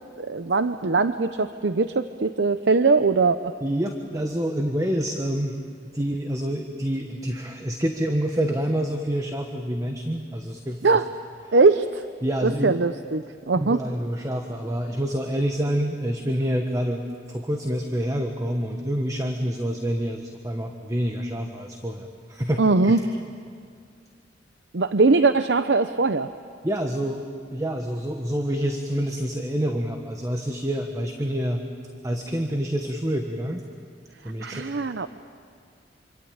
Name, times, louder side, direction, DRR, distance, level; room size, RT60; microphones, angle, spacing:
voice 1, 0.2-3.5 10.8-11.0 11.5-12.0 12.4-13.8 22.6-23.0 24.7-26.3 34.4-35.1, right 3 dB, 80° right, 10 dB, 0.7 m, -21 dB
voice 2, 3.6-11.0 12.2-12.8 13.6-23.0 26.6-27.2 27.5-31.6 32.0-33.6 34.2-34.7, equal, 20° right, 4 dB, 1.4 m, -27 dB
26.5 x 26.0 x 8.8 m, 2.2 s
head